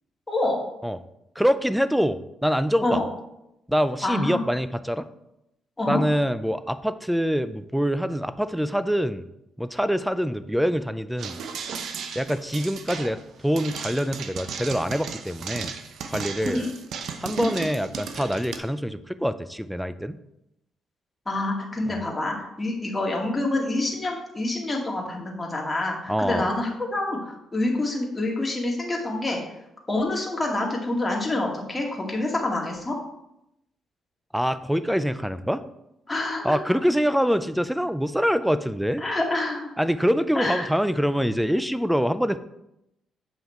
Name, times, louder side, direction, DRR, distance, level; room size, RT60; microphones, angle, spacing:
voice 1, 0.3-0.6 2.8-3.1 4.0-4.4 5.8-6.0 16.4-16.7 17.4-17.5 21.3-29.4 29.9-33.0 36.1-36.8 39.0-39.7 40.3-40.7, left 2 dB, 15° left, -1 dB, 2.1 m, -27 dB
voice 2, 1.4-3.0 3.7-5.1 5.9-9.2 9.6-11.4 12.2-15.7 16.1-16.6 17.2-20.2 21.9-22.0 26.1-26.5 34.3-35.6 36.4-39.0 39.8-42.4, equal, ahead, 13 dB, 0.5 m, -25 dB
sound 1, 11.2-18.6, right 6 dB, 70° right, 0.8 m, -35 dB
7.7 x 5.6 x 4.3 m, 0.84 s
cardioid pair, 90°, 0 cm